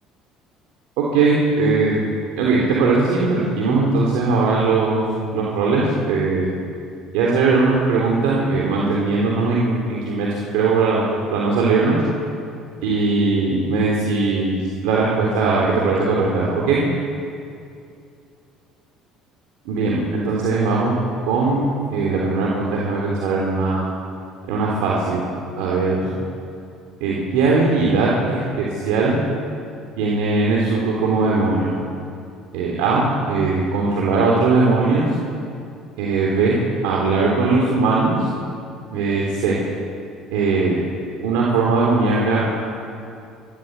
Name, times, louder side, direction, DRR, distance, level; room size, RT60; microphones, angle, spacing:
voice 1, 1.0-2.0 2.4-5.0 5.3-6.5 7.1-12.0 12.8-14.6 14.8-16.8 19.7-21.0 21.2-23.9 24.5-25.2 25.6-26.1 27.0-29.2 30.0-31.7 32.5-35.1 36.0-38.3 38.9-39.5 40.3-40.8 41.2-42.6, right 3 dB, 80° right, -3 dB, 3.7 m, -19 dB
26.0 x 12.5 x 8.3 m, 2.5 s
supercardioid pair, 80°, 0 cm